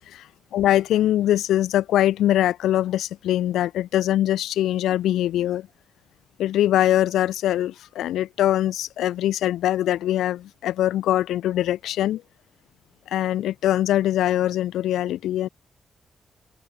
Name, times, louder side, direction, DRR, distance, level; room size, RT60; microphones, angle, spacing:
voice 1, 0.5-5.7 6.4-12.2 13.1-15.5, left 12 dB, 80° left, 3.7 m, -22 dB
open air
supercardioid pair, 55°, 0 cm